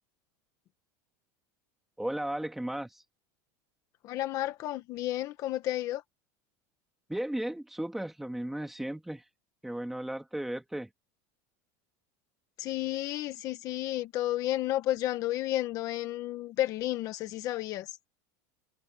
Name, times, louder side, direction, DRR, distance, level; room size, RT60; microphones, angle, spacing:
voice 1, 2.0-3.0 7.1-9.3 9.6-10.9, right 1 dB, ahead, 2.3 m, -35 dB
voice 2, 4.0-6.0 12.6-18.0, left 14 dB, 35° left, 1.3 m, -32 dB
supercardioid pair, 170°, 10 cm